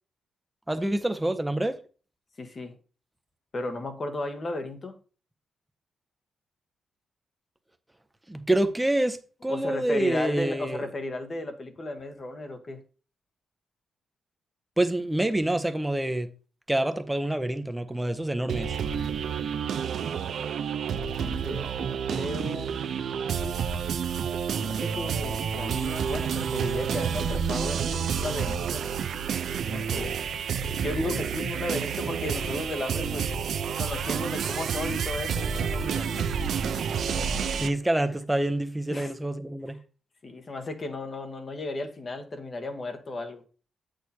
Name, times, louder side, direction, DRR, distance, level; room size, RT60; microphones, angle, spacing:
voice 1, 0.7-1.8 8.3-9.2 9.4-10.8 14.8-16.3 16.7-18.7 36.2-36.3 37.6-39.8, right 1 dB, 10° right, 0.8 m, -27 dB
voice 2, 2.4-2.7 3.5-5.0 9.5-12.8 20.1-20.4 20.9-22.7 24.6-28.8 29.7-30.2 30.8-33.3 33.8-36.3 38.9-39.1 39.7-39.8 40.2-43.4, left 2 dB, 35° left, 1.3 m, -35 dB
sound 1, 18.5-37.7, right 7 dB, 70° right, 0.6 m, -29 dB
8.1 x 6.3 x 2.9 m
cardioid pair, 120°, 0 cm